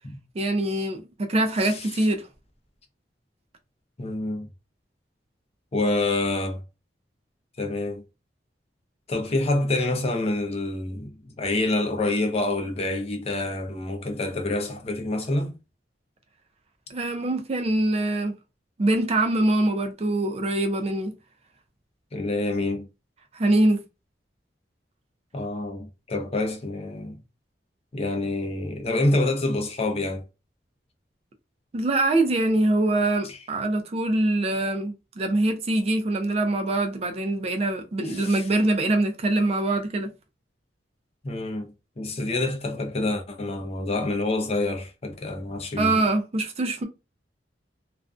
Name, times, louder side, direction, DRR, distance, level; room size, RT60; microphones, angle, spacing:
voice 1, 0.3-2.3 16.9-18.3 18.8-21.1 23.3-23.8 31.7-40.1 45.8-46.9, right 2 dB, 35° right, 0.4 m, -24 dB
voice 2, 1.6-2.0 4.0-4.5 5.7-6.6 7.6-8.0 9.1-15.5 22.1-22.9 25.3-27.2 27.9-30.2 33.2-33.4 38.0-38.5 41.2-46.0, left 2 dB, 35° left, 0.5 m, -27 dB
2.4 x 2.2 x 2.3 m
head